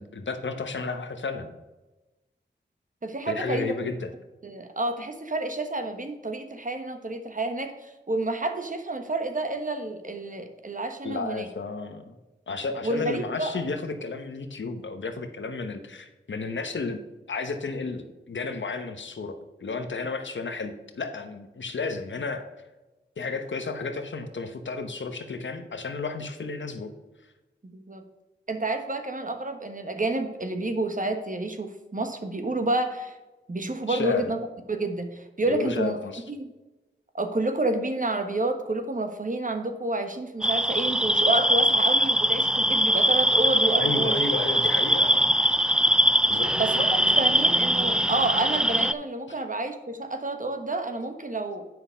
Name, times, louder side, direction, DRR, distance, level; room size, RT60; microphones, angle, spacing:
voice 1, 0.0-1.5 3.3-4.1 11.0-12.2 12.5-17.0 17.3-22.5 23.2-26.9 33.9-34.3 35.5-36.2 43.8-45.3 46.3-46.5, left 4 dB, 75° left, 7 dB, 1.0 m, -32 dB
voice 2, 3.0-3.7 4.4-11.5 12.8-13.6 27.6-28.0 28.5-33.2 33.5-36.0 36.3-36.5 37.1-44.3 46.5-51.7, right 2 dB, 45° right, 6 dB, 1.3 m, -29 dB
sound 1, 40.4-48.9, equal, 5° right, 0.4 m, -22 dB
8.0 x 5.8 x 5.2 m, 1.1 s
cardioid pair, 45°, 19 cm